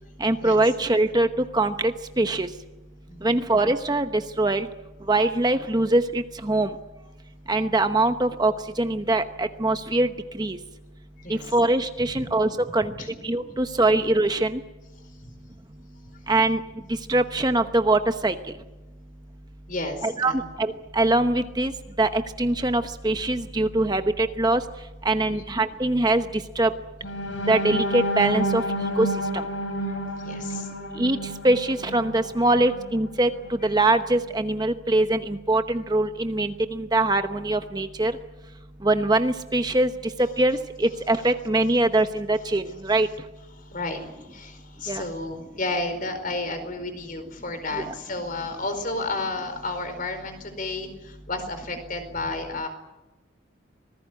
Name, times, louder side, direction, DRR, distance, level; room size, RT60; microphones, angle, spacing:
voice 1, 0.2-2.5 3.2-4.7 5.1-6.7 7.5-10.1 10.4-10.6 11.3-12.9 13.2-14.6 16.3-16.6 17.1-18.3 20.0-20.3 20.6-21.7 22.0-24.6 25.0-26.7 27.5-28.6 29.0-29.1 31.0-31.2 31.4-38.1 38.8-39.9 40.2-43.1 44.9-45.0 47.7-47.9, right 2 dB, 20° right, 8 dB, 0.9 m, -23 dB
voice 2, 11.2-11.5 12.1-12.3 13.0-13.1 13.5-13.6 15.0-15.3 16.1-16.2 19.7-20.4 25.2-25.5 27.3-27.4 29.8-30.7 43.6-52.7, left 2 dB, 45° left, 8 dB, 4.6 m, -32 dB
sound 1, 27.0-33.0 33.4-33.6 34.0-34.2, equal, 70° left, 5.4 m, -30 dB
26.0 x 19.5 x 9.6 m, 1.1 s
head